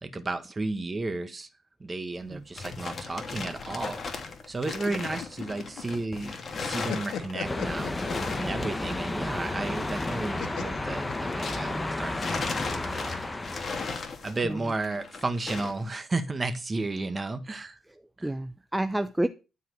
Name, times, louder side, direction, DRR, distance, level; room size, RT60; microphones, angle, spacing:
voice 1, 0.0-1.5 1.8-4.0 4.5-7.9 8.3-13.2 14.2-17.8 18.2-18.3, right 3 dB, 25° right, 11 dB, 1.5 m, -33 dB
sound 1, 2.2-11.8 12.1-15.8, left 4 dB, 40° left, 2.5 m, -38 dB
sound 2, 4.5-6.2 6.5-8.7 10.4-11.8, left 7 dB, 75° left, 1.8 m, -37 dB
sound 3, 7.4-14.0, left 2 dB, 15° left, 1.3 m, -32 dB
voice 2, 18.2-19.3, right 1 dB, 5° right, 11 dB, 0.6 m, -29 dB
12.0 x 4.6 x 8.0 m, 0.31 s
cardioid pair, 90°, 0 cm